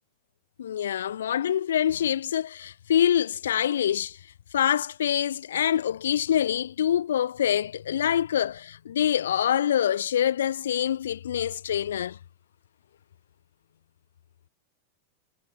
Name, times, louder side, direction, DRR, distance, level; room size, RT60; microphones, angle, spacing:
voice 1, 0.6-4.2 4.5-12.2, left 10 dB, 65° left, 0.5 m, -25 dB
figure-of-eight pair, 90°, 0 cm